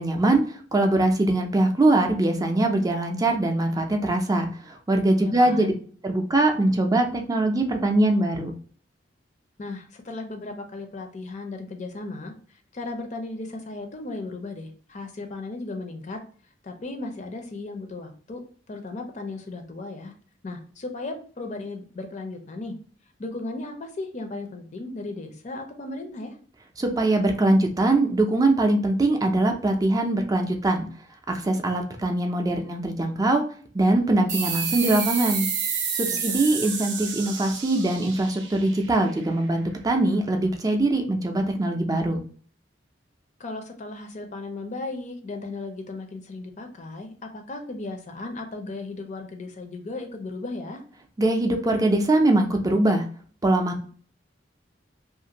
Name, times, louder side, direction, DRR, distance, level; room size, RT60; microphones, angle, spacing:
voice 1, 0.0-5.7 6.0-8.5 26.8-30.9 31.3-33.4 33.7-35.5 35.9-42.2 51.2-53.0 53.4-53.9, right 2 dB, 20° right, 3 dB, 0.4 m, -22 dB
voice 2, 5.2-5.7 9.6-16.2 16.6-18.4 18.7-20.1 20.4-22.8 23.2-26.3 36.1-36.2 43.4-50.8, left 2 dB, 40° left, 5 dB, 0.5 m, -36 dB
sound 1, 34.3-39.5, right 6 dB, 75° right, 0.6 m, -30 dB
2.6 x 2.5 x 2.8 m, 0.43 s
head